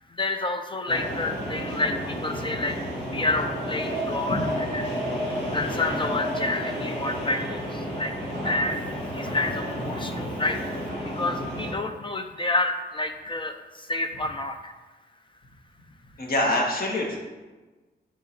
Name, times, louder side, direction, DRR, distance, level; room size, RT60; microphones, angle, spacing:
voice 1, 0.1-2.8 3.1-4.4 4.7-4.8 5.5-8.2 8.4-8.8 9.1-10.6 11.0-14.7, left 2 dB, 30° left, 6 dB, 0.4 m, -29 dB
sound 1, 0.9-11.7, equal, 85° left, 1.8 m, -31 dB
voice 2, 16.2-17.2, left 1 dB, 55° left, -1 dB, 1.5 m, -26 dB
4.7 x 4.6 x 5.7 m, 1.2 s
wide cardioid pair, 110°, 18 cm